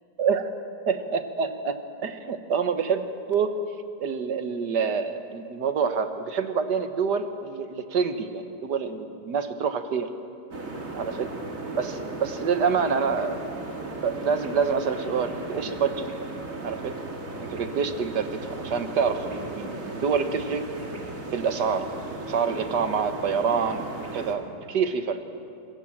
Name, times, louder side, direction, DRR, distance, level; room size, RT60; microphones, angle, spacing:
voice 1, 0.9-1.8 2.0-3.5 4.0-10.1 10.9-11.3 11.8-13.4 14.0-16.1 16.6-17.0 17.4-20.7 21.3-21.9 22.3-23.8 24.1-25.2, right 6 dB, 70° right, 8 dB, 1.9 m, -27 dB
sound 1, 10.5-24.4, right 2 dB, 50° right, 2.7 m, -36 dB
25.0 x 22.0 x 7.4 m, 2.6 s
omnidirectional pair, 1.9 m